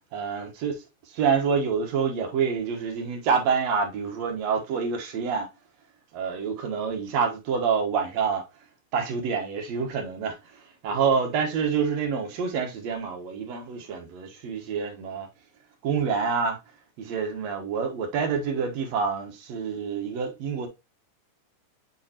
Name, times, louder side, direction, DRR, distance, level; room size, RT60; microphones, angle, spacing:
voice 1, 0.1-5.5 6.1-8.4 8.9-15.3 15.8-16.6 17.0-20.7, right 6 dB, 60° right, 2.1 m, -27 dB
7.2 x 4.7 x 2.8 m
omnidirectional pair, 3.9 m